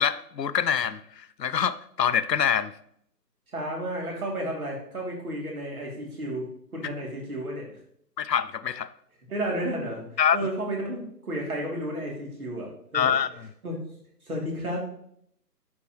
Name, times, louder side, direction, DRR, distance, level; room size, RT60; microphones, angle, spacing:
voice 1, 0.0-2.7 8.2-8.9 10.2-10.4 12.9-13.5, left 8 dB, 75° left, 15 dB, 0.7 m, -25 dB
voice 2, 3.5-6.5 6.7-7.7 9.3-10.0 10.3-13.1 13.6-13.8 14.3-14.8, right 1 dB, 60° right, -1 dB, 3.2 m, -32 dB
10.5 x 6.0 x 3.2 m, 0.69 s
figure-of-eight pair, 165°, 49 cm